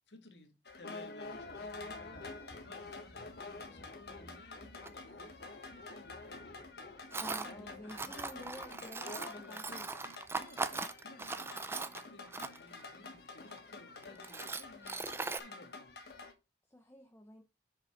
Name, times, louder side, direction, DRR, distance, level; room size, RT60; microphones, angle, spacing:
voice 1, 0.1-6.6 7.4-9.7 10.3-15.9, left 2 dB, 80° left, 1.8 m, -58 dB
sound 1, 0.7-16.3, left 3 dB, 65° left, 1.4 m, -48 dB
Tools, 4.8-4.9 7.1-7.5 7.9-12.8 13.5-13.6 14.0-15.4, right 3 dB, 15° right, 0.4 m, -40 dB
voice 2, 7.2-9.9 16.7-17.4, left 1 dB, 15° left, 0.8 m, -50 dB
6.9 x 5.4 x 4.4 m
head